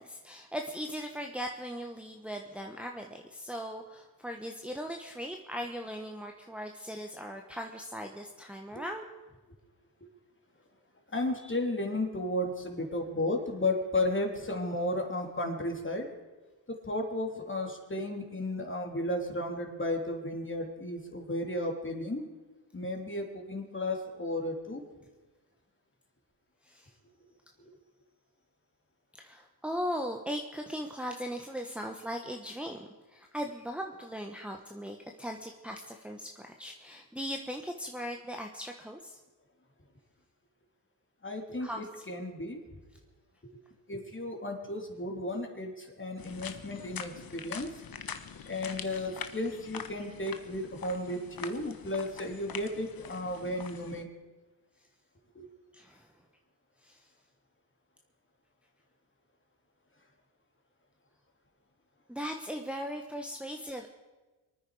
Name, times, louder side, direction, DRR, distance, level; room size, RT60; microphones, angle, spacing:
voice 1, 0.0-9.0 26.6-26.9 29.1-39.2 41.6-41.9 55.7-56.1 56.8-57.1 62.1-63.9, equal, 5° right, 2 dB, 1.3 m, -39 dB
voice 2, 11.1-16.1 16.7-22.2 22.7-24.8 41.2-42.6 43.9-47.7 48.5-54.1 55.3-55.5, left 1 dB, 25° left, 2 dB, 3.3 m, -34 dB
sound 1, 46.2-54.0, left 7 dB, 50° left, 1.2 m, -44 dB
24.5 x 9.5 x 5.0 m, 1.2 s
cardioid pair, 65°, 44 cm